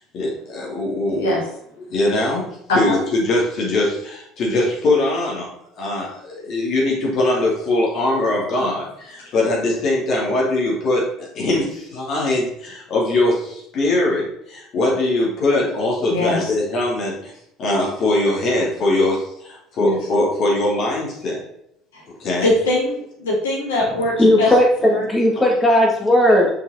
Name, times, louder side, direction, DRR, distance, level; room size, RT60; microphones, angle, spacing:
voice 1, 0.0-1.4 1.9-2.5 2.7-5.5 5.8-17.3 17.6-21.4 22.2-22.5 25.4-25.5, left 2 dB, 50° left, -3 dB, 2.6 m, -21 dB
voice 2, 1.1-1.4 2.7-3.0 8.6-8.7 9.2-9.3 16.1-16.5 19.8-20.0 21.9-22.0 22.4-24.5 24.9-25.1, left 2 dB, 80° left, -3 dB, 2.4 m, -22 dB
voice 3, 24.2-26.5, left 1 dB, 20° left, 0 dB, 2.1 m, -15 dB
5.7 x 5.6 x 4.2 m, 0.75 s
figure-of-eight pair, 65°, 0 cm